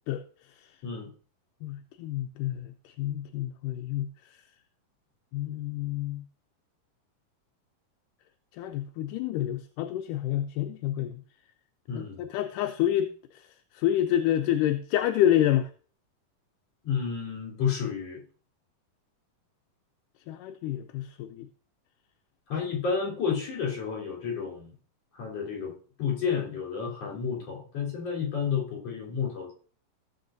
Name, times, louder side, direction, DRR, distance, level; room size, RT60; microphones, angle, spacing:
voice 1, 1.6-4.1 5.3-6.2 8.6-11.2 11.9-13.1 13.7-15.7 20.3-21.5, left 12 dB, 80° left, 2.1 m, -28 dB
voice 2, 11.9-12.2 16.8-18.2 22.5-24.7 25.1-29.5, left 6 dB, 50° left, 4.6 m, -31 dB
16.0 x 7.8 x 2.6 m
omnidirectional pair, 3.9 m